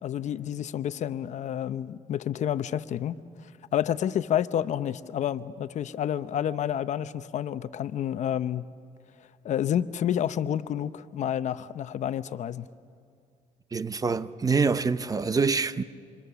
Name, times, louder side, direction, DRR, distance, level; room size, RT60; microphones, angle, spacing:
voice 1, 0.0-3.2 3.7-8.7 9.4-12.6, left 10 dB, 60° left, 0.8 m, -29 dB
voice 2, 13.7-15.8, right 4 dB, 25° right, 0.8 m, -25 dB
27.5 x 27.0 x 6.9 m
cardioid pair, 95°, 14 cm